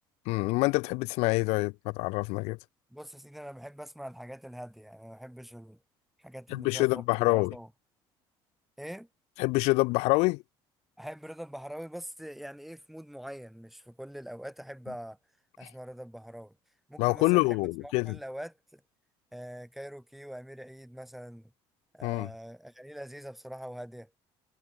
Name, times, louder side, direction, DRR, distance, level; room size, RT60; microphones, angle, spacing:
voice 1, 0.2-2.6 6.5-7.5 9.4-10.4 17.0-18.2 22.0-22.3, left 25 dB, 90° left, 1.7 m, -26 dB
voice 2, 2.9-5.8 6.2-7.7 8.8-9.1 11.0-15.2 15.6-16.6 16.9-18.8 19.3-21.5 21.9-24.1, equal, ahead, 4.7 m, -43 dB
cardioid pair, 130°, 11 cm